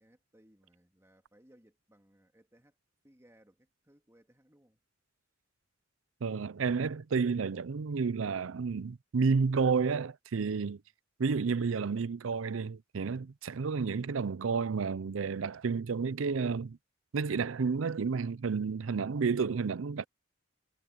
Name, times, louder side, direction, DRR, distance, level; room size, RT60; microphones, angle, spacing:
voice 1, 0.0-2.7 3.0-4.8 10.4-10.8, right 1 dB, 15° right, 2.5 m, -64 dB
voice 2, 6.2-10.8 11.2-16.8 17.1-20.0, right 5 dB, 85° right, 0.5 m, -31 dB
head